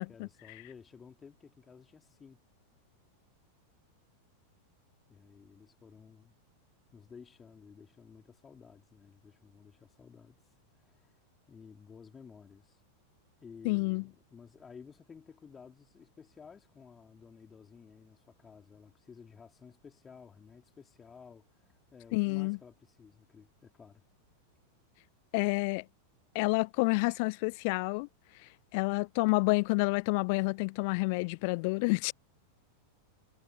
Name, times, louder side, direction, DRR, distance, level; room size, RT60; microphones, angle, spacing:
voice 1, 0.0-2.4 5.1-6.3 6.9-10.4 10.7-11.1 11.5-12.8 13.4-24.0, left 6 dB, 20° left, 4.1 m, -54 dB
voice 2, 13.6-14.0 22.1-22.6 25.3-25.8 26.3-28.1 28.7-32.1, left 30 dB, 45° left, 0.3 m, -29 dB
figure-of-eight pair, 90°, 0 cm